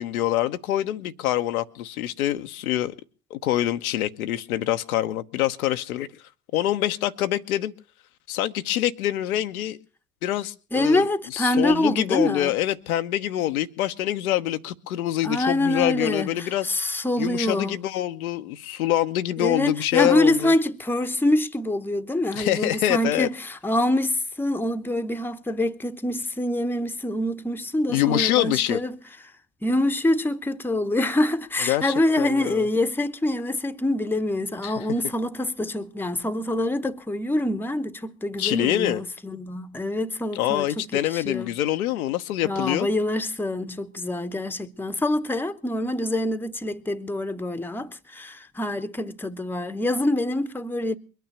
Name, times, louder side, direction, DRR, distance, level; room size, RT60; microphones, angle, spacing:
voice 1, 0.0-3.0 3.3-6.1 6.5-7.7 8.3-9.8 10.2-16.7 17.2-20.5 22.3-23.3 27.9-28.8 31.6-32.7 34.6-34.7 38.4-39.0 40.3-42.9, left 13 dB, 70° left, 1.0 m, -25 dB
voice 2, 10.7-12.5 15.2-17.8 19.4-29.0 29.6-41.5 42.4-51.0, left 1 dB, 5° left, 1.0 m, -25 dB
22.5 x 9.3 x 6.9 m
figure-of-eight pair, 70°, 45 cm